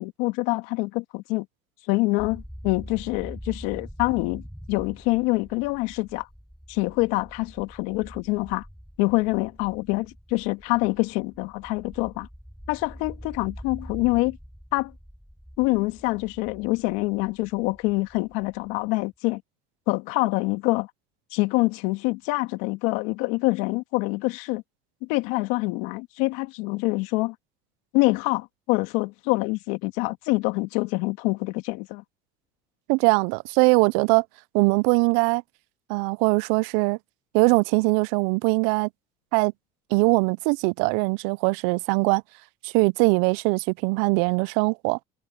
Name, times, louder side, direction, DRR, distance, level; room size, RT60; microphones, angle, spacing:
voice 1, 0.0-1.5 1.9-6.3 6.7-8.6 9.0-12.3 12.7-14.4 14.7-14.9 15.6-19.4 19.9-20.9 21.3-24.6 25.1-27.3 27.9-32.0, left 24 dB, 75° left, 2.3 m, -25 dB
sound 1, 2.2-19.0, equal, ahead, 7.5 m, -44 dB
voice 2, 32.9-34.2 34.5-35.4 35.9-37.0 37.3-38.9 39.3-39.5 39.9-42.2 42.6-45.0, right 30 dB, 75° right, 0.5 m, -21 dB
supercardioid pair, 90°, 20 cm